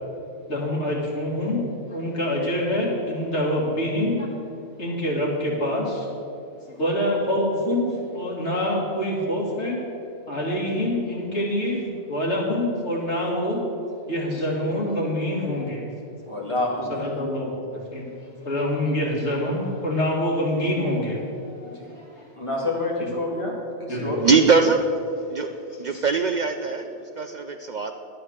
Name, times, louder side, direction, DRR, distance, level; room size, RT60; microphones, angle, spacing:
voice 1, 0.5-4.3 4.8-6.1 6.7-9.8 10.3-13.6 14.1-15.8 16.9-22.2 23.0-23.1 23.9-24.1 25.9-26.0, left 1 dB, 85° left, -3 dB, 2.7 m, -26 dB
voice 2, 16.3-17.1 21.6-21.9 22.4-24.3, left 2 dB, 25° left, -3 dB, 2.3 m, -28 dB
voice 3, 24.2-24.8 25.3-25.5 25.8-26.9 27.2-27.9, right 5 dB, 50° right, 6 dB, 0.6 m, -21 dB
11.5 x 8.9 x 6.6 m, 2.6 s
omnidirectional pair, 1.1 m